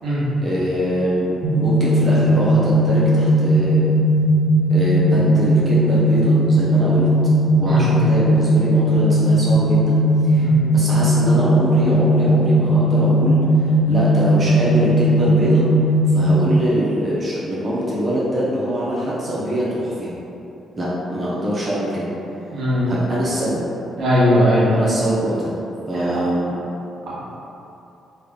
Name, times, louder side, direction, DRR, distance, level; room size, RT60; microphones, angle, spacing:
voice 1, 0.4-3.9 4.7-7.1 7.6-15.6 16.1-20.1 20.7-22.1 22.9-23.6 24.7-25.5 25.9-26.6, equal, 35° right, -7 dB, 0.7 m, -23 dB
sound 1, 1.4-16.4, right 1 dB, 85° right, 0.4 m, -17 dB
voice 2, 22.5-22.9 24.0-24.7, equal, 60° right, -8 dB, 1.4 m, -18 dB
3.4 x 2.2 x 3.7 m, 2.8 s
cardioid pair, 90°, 0 cm